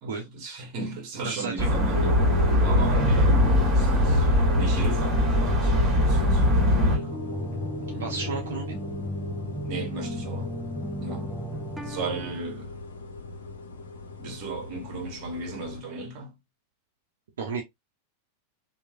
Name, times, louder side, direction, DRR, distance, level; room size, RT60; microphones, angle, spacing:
voice 1, 0.0-7.2 7.9-8.1 9.6-10.5 11.0-11.4 11.8-12.7 14.2-16.3, right 3 dB, 40° right, 0.9 m, -36 dB
voice 2, 1.2-1.7 8.0-8.8 17.4-17.6, right 5 dB, 60° right, 0.6 m, -32 dB
sound 1, 1.6-7.0, left 1 dB, 25° right, 1.2 m, -21 dB
sound 2, 1.9-15.8, left 3 dB, 70° left, 0.7 m, -36 dB
sound 3, 2.6-12.4, equal, 5° right, 0.3 m, -35 dB
3.0 x 2.1 x 2.4 m
figure-of-eight pair, 90°, 0 cm